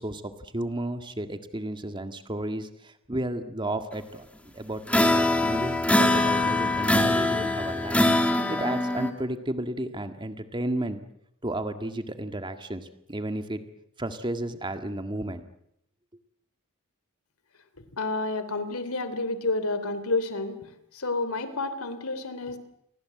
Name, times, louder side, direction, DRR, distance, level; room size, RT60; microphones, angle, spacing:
voice 1, 0.0-11.0 11.4-13.6 14.0-15.4, right 1 dB, 20° right, 8 dB, 1.8 m, -33 dB
sound 1, 4.9-9.1, left 1 dB, 5° left, 2.6 m, -23 dB
voice 2, 18.0-20.6 20.9-22.6, left 3 dB, 75° left, 12 dB, 3.3 m, -29 dB
29.5 x 23.5 x 7.8 m, 0.78 s
head